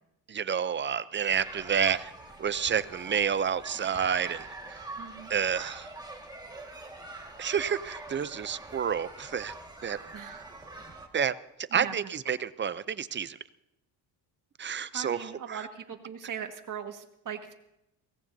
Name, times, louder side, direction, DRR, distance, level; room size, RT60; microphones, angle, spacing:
voice 1, 0.3-2.1 2.4-4.8 5.3-5.9 7.4-9.5 9.8-10.0 11.1-11.3 11.7-13.4 14.6-15.7, right 7 dB, 30° right, 15 dB, 0.5 m, -29 dB
sound 1, 1.3-11.1, right 2 dB, 10° right, 1.7 m, -44 dB
voice 2, 5.0-5.3 10.1-10.5 11.7-11.9 14.9-17.5, right 8 dB, 50° right, 5 dB, 1.7 m, -40 dB
23.0 x 17.5 x 2.7 m, 0.84 s
cardioid pair, 115°, 40 cm